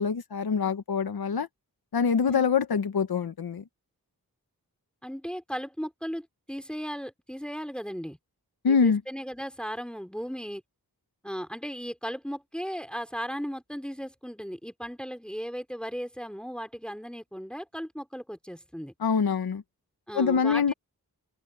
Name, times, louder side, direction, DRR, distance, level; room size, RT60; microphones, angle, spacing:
voice 1, 0.0-1.5 1.9-3.6 8.6-9.0 19.0-19.6 20.1-20.7, left 6 dB, 80° left, 1.2 m, -25 dB
voice 2, 2.2-2.5 5.0-8.2 8.7-10.6 11.2-18.9 20.1-20.7, equal, 5° left, 3.2 m, -36 dB
wide cardioid pair, 105°, 36 cm